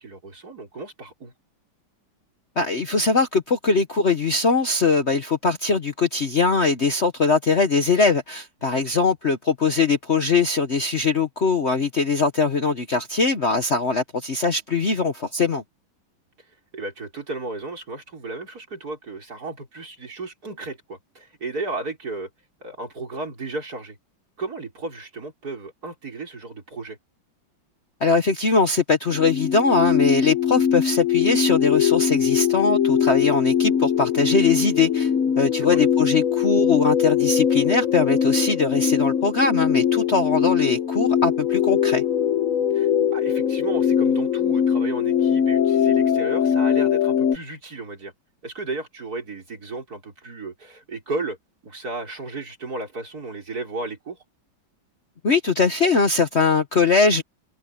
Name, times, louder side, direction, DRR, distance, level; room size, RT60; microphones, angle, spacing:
voice 1, 0.0-1.3 8.7-9.0 16.7-22.3 22.6-24.0 24.4-27.0 35.6-35.8 42.7-48.1 48.4-51.4 51.6-54.2, right 3 dB, 50° right, 5.0 m, -34 dB
voice 2, 2.6-15.6 28.0-35.1 35.4-42.0 55.2-57.2, left 4 dB, 40° left, 1.2 m, -21 dB
sound 1, 29.1-47.4, left 8 dB, 55° left, 1.0 m, -21 dB
omnidirectional pair, 2.1 m